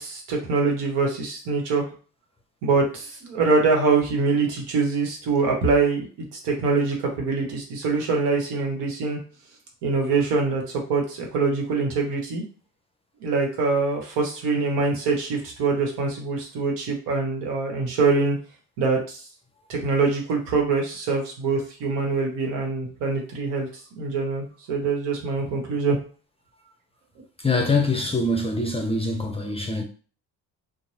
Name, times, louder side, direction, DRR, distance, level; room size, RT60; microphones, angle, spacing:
voice 1, 0.0-1.8 2.6-6.1 6.3-9.2 9.8-12.4 13.2-18.4 18.8-19.2 19.7-23.7 24.0-26.0, right 4 dB, 70° right, 1.0 m, -24 dB
voice 2, 27.4-29.8, left 2 dB, 15° left, 0.6 m, -24 dB
2.6 x 2.1 x 3.2 m
hypercardioid pair, 50°, 43 cm